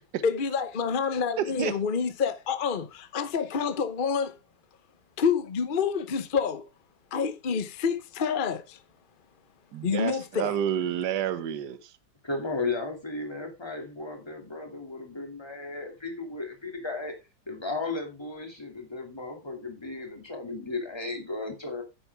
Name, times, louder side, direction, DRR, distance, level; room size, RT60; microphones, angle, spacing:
voice 1, 0.2-4.3 5.2-6.6 7.1-8.8 9.8-10.6, left 6 dB, 45° left, 0.7 m, -28 dB
voice 2, 1.4-1.7 9.7-11.9, right 9 dB, 65° right, 1.4 m, -29 dB
voice 3, 12.2-17.2 17.5-21.8, left 3 dB, 15° left, 2.4 m, -35 dB
9.7 x 9.1 x 3.4 m
omnidirectional pair, 2.1 m